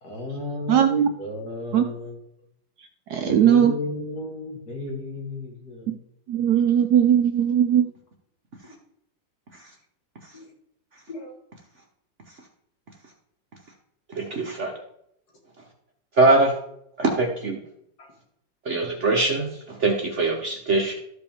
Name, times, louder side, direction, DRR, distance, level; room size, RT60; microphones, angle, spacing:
voice 1, 0.0-2.2 3.2-6.0 10.3-10.5 11.1-11.3 18.0-18.1, left 2 dB, 55° left, -1 dB, 2.3 m, -33 dB
voice 2, 0.7-1.1 1.7-1.9 3.1-3.7 5.9-6.0 6.3-7.9, right 9 dB, 70° right, 6 dB, 1.0 m, -19 dB
voice 3, 14.1-14.7 16.2-16.5 17.0-17.6 18.6-20.9, right 2 dB, 50° right, 0 dB, 1.0 m, -22 dB
13.0 x 5.0 x 3.5 m, 0.73 s
omnidirectional pair, 2.1 m